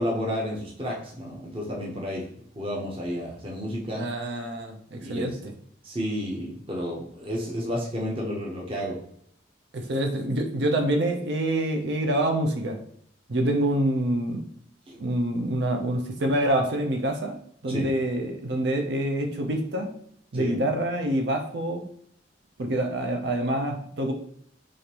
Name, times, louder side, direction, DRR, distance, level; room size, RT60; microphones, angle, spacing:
voice 1, 0.0-2.2 2.6-4.1 5.0-5.4 5.8-9.0 14.9-15.0 17.7-17.9 20.3-20.6, equal, 30° right, -3 dB, 0.8 m, -31 dB
voice 2, 3.9-5.5 9.7-12.8 13.3-14.4 15.0-17.4 17.6-19.9 20.3-21.9 22.6-24.1, right 1 dB, 60° right, 3 dB, 0.6 m, -26 dB
5.0 x 2.5 x 2.9 m, 0.64 s
head